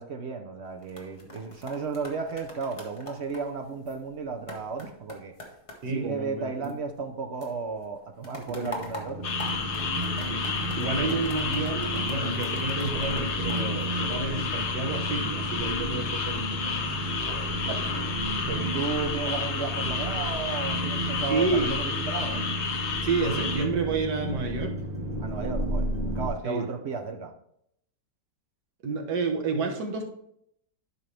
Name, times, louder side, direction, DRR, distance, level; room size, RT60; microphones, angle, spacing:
voice 1, 0.0-5.3 5.9-9.3 11.9-12.0 17.2-18.1 18.5-22.4 25.2-25.9 26.1-27.3, right 5 dB, 55° right, 5 dB, 0.8 m, -34 dB
sound 1, 0.6-7.1 7.4-14.6 15.1-15.4, left 1 dB, 20° left, 1.2 m, -45 dB
voice 2, 5.8-6.7 8.5-8.8 10.3-10.4 10.7-17.0 17.7-17.8 21.3-21.7 23.0-24.8 26.4-26.7 28.8-30.0, right 4 dB, 80° right, 2 dB, 1.9 m, -30 dB
sound 2, 8.7-26.3, right 1 dB, 25° right, 1.9 m, -33 dB
sound 3, 9.2-23.7, left 5 dB, 50° left, 0.9 m, -32 dB
11.5 x 5.4 x 3.3 m, 0.72 s
omnidirectional pair, 1.8 m